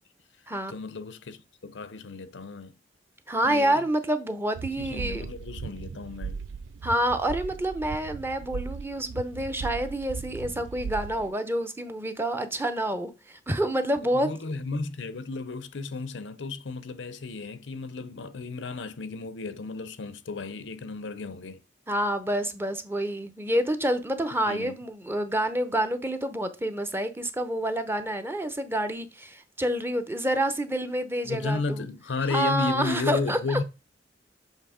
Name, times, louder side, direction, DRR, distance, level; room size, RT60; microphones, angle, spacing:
voice 1, 0.7-2.8 3.4-3.8 4.8-6.4 14.1-21.6 24.5-24.8 31.3-33.6, left 3 dB, 85° left, 0.6 m, -33 dB
voice 2, 3.3-5.2 6.8-14.3 21.9-31.8 32.3-33.6, right 1 dB, 15° right, 0.7 m, -28 dB
sound 1, 4.5-11.3, right 5 dB, 85° right, 0.4 m, -38 dB
7.4 x 3.0 x 5.0 m
head